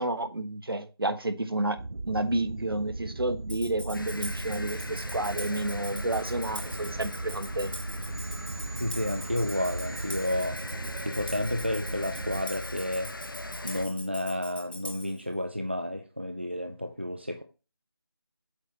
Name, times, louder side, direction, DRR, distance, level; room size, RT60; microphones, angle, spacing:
voice 1, 0.0-1.8 2.1-7.8, right 2 dB, 65° right, 1.2 m, -30 dB
sound 1, 1.8-12.4, right 2 dB, 90° right, 0.7 m, -37 dB
Tambourine, 3.5-15.2, left 1 dB, 25° left, 0.7 m, -43 dB
sound 2, 3.9-13.9, left 1 dB, 55° left, 1.1 m, -40 dB
voice 2, 8.8-10.6 11.0-13.1 13.6-17.4, left 1 dB, 25° right, 0.4 m, -31 dB
8.3 x 5.6 x 2.9 m
figure-of-eight pair, 175°, 13 cm